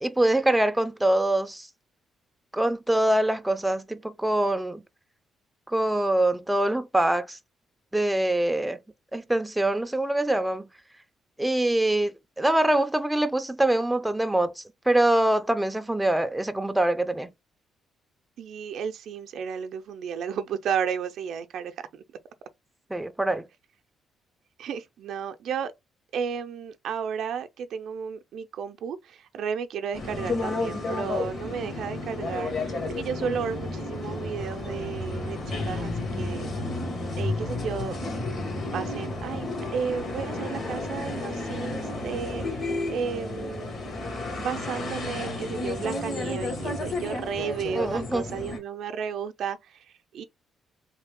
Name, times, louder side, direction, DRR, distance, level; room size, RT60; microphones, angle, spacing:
voice 1, 0.0-1.7 2.5-4.8 5.7-7.4 7.9-8.8 9.1-10.7 11.4-17.3 22.9-23.4 47.7-48.2, right 1 dB, 10° right, 0.4 m, -24 dB
voice 2, 18.4-22.0 24.6-25.7 26.1-35.9 36.2-36.5 37.2-38.0 38.7-39.5 39.7-43.7 44.4-49.9 50.1-50.2, right 7 dB, 70° right, 0.5 m, -33 dB
sound 1, 29.9-48.6, left 2 dB, 55° left, 1.6 m, -32 dB
3.2 x 2.8 x 3.6 m
cardioid pair, 90°, 0 cm